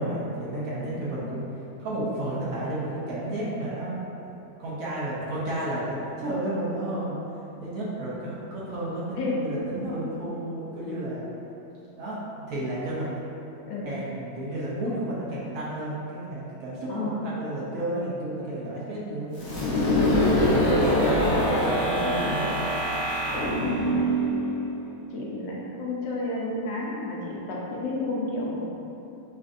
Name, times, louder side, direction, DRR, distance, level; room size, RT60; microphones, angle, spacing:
voice 1, 0.0-1.4 1.8-4.3 4.6-7.2 7.6-11.3 12.0-13.1 13.8-19.5 19.9-22.5 23.3-23.5, right 1 dB, 65° right, -8 dB, 1.0 m, -32 dB
voice 2, 16.9-17.3 19.9-20.8 22.0-22.5 25.1-28.6, left 2 dB, 85° left, -4 dB, 1.3 m, -31 dB
sound 1, 19.4-25.1, equal, 60° left, 1.1 m, -24 dB
5.0 x 2.5 x 2.5 m, 2.8 s
omnidirectional pair, 1.8 m